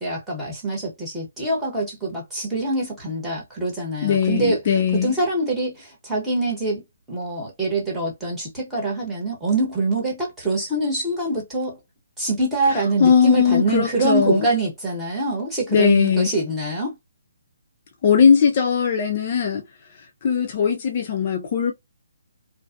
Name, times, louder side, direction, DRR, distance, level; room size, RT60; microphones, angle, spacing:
voice 1, 0.0-4.6 4.9-6.8 7.1-11.8 12.2-16.9, right 2 dB, 5° right, 0.9 m, -24 dB
voice 2, 4.0-5.1 12.7-14.5 15.7-16.3 18.0-19.7 20.2-21.7, left 7 dB, 35° left, 0.3 m, -19 dB
2.5 x 2.2 x 2.3 m
hypercardioid pair, 170°, 0 cm